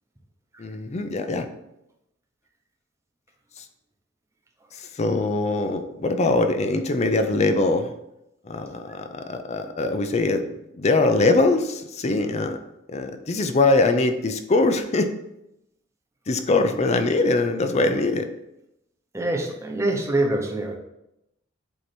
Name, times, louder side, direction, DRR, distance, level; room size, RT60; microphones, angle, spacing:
voice 1, 0.6-1.5 5.0-7.9 8.5-10.4 10.8-12.6 12.9-15.1 16.3-18.3, left 2 dB, 35° left, 8 dB, 0.4 m, -22 dB
voice 2, 19.1-20.8, right 1 dB, 15° right, 0 dB, 0.9 m, -24 dB
7.9 x 2.9 x 4.4 m, 0.85 s
head